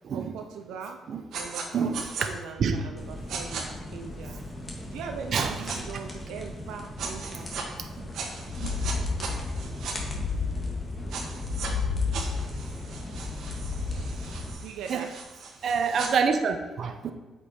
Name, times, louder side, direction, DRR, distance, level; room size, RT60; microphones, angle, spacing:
voice 1, 0.1-1.0 1.4-4.4 4.9-7.5 14.5-15.2, right 6 dB, 90° right, 4 dB, 0.6 m, -40 dB
sound 1, 1.3-1.6 1.9-2.3 3.3-3.6 5.3-5.8 7.0-7.6 8.1-9.9 11.1-11.7 12.1-16.1, right 5 dB, 75° right, 1.4 m, -37 dB
voice 2, 1.7-2.3 2.6-2.8 5.3-5.8 7.8-8.1 8.6-8.7 12.2-12.3 14.9-15.1 15.6-17.1, right 5 dB, 60° right, 7 dB, 0.8 m, -27 dB
sound 2, 3.0-14.5, left 1 dB, 25° left, 1.9 m, -39 dB
sound 3, 8.5-14.6, left 4 dB, 85° left, 1.0 m, -32 dB
8.1 x 5.3 x 4.3 m, 1.2 s
cardioid pair, 90°, 0 cm